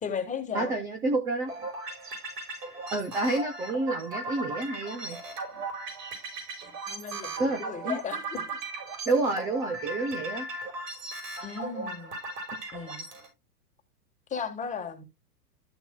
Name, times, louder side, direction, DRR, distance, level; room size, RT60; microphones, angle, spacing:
voice 1, 0.0-0.7 6.9-8.6 11.4-12.1 12.7-13.0 14.3-15.0, left 6 dB, 15° left, 1.4 m, -35 dB
voice 2, 0.5-1.5 2.9-5.2 7.4-8.0 9.1-10.5, right 2 dB, 10° right, 0.3 m, -29 dB
sound 1, 1.5-13.3, right 2 dB, 75° right, 6.0 m, -38 dB
13.0 x 6.9 x 2.2 m
hypercardioid pair, 130°, 48 cm